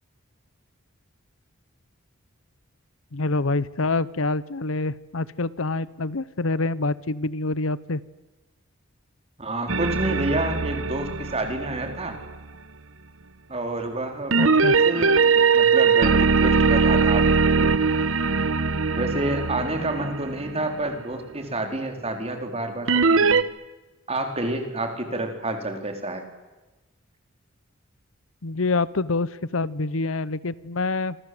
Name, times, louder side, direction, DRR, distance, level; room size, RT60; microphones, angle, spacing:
voice 1, 3.1-8.0 14.4-14.7 28.4-31.2, left 3 dB, 85° left, 18 dB, 0.9 m, -26 dB
voice 2, 9.4-12.2 13.5-17.7 19.0-23.4 24.1-26.2, right 2 dB, 30° right, 5 dB, 4.2 m, -29 dB
sound 1, 9.7-12.4 14.3-20.8 22.9-23.4, right 4 dB, 75° right, 1.1 m, -21 dB
27.0 x 26.0 x 7.9 m, 1.2 s
head